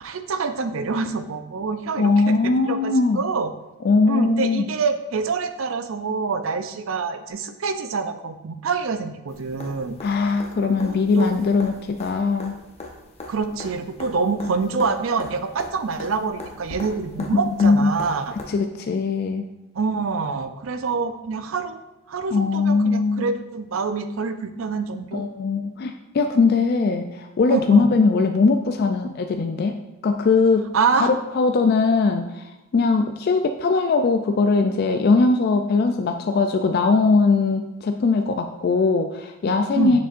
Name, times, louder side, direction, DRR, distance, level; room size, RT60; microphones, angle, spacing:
voice 1, 0.0-3.5 4.1-10.0 10.6-11.3 13.3-18.4 19.8-21.8 22.1-25.2 27.5-27.9 30.7-31.1 39.8-40.0, right 4 dB, 70° right, 9 dB, 0.5 m, -26 dB
voice 2, 2.0-3.2 3.8-4.7 10.0-12.5 17.3-18.0 18.5-19.5 22.3-23.3 25.1-32.4 32.7-40.0, left 4 dB, 50° left, 5 dB, 0.3 m, -20 dB
sound 1, 9.3-18.4 20.4-20.5, left 2 dB, 30° left, 0.8 m, -40 dB
6.8 x 6.4 x 2.5 m, 0.97 s
head